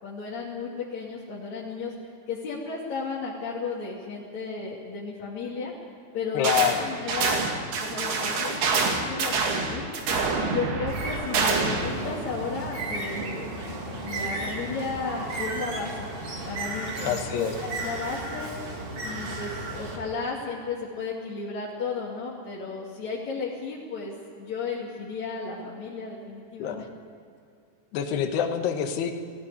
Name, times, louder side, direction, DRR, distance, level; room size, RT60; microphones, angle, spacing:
voice 1, 0.0-5.7 6.1-6.5 6.8-9.9 10.4-16.1 16.4-18.5 19.0-26.9, left 4 dB, 45° left, -6 dB, 3.3 m, -34 dB
voice 2, 6.3-6.9 17.0-17.5 26.6-26.8 27.9-29.1, left 9 dB, 75° left, 4 dB, 3.3 m, -26 dB
sound 1, 6.4-6.8 7.1-11.9, right 4 dB, 70° right, 4.2 m, -26 dB
Bird, 10.9-20.0, right 2 dB, 40° right, 3.1 m, -34 dB
18.5 x 16.5 x 9.7 m, 2.5 s
omnidirectional pair, 4.8 m